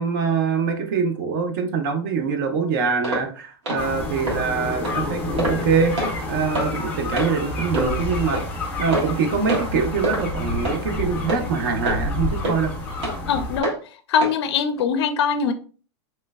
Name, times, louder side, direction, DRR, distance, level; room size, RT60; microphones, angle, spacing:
voice 1, 0.0-5.9 6.3-8.4 8.8-12.7, right 5 dB, 45° right, 0.6 m, -24 dB
sound 1, 3.0-3.3 3.7-3.8 4.3-4.4 4.8-5.0 5.4-5.6 6.0-6.1 6.5-6.7 7.2-7.3 7.7-7.9 8.3-8.5 8.9-9.2 9.5-9.7 10.0-10.2 10.6-10.8 11.3-11.4 11.8-12.0 12.4-12.6 13.0-13.2 13.6-13.8 14.2-14.4 14.8-14.9, right 1 dB, 85° right, 1.4 m, -25 dB
sound 2, 3.8-13.6, left 2 dB, 10° left, 0.6 m, -29 dB
voice 2, 13.3-13.7 14.1-15.5, left 6 dB, 65° left, 0.4 m, -22 dB
3.2 x 3.0 x 2.2 m
supercardioid pair, 170°, 15 cm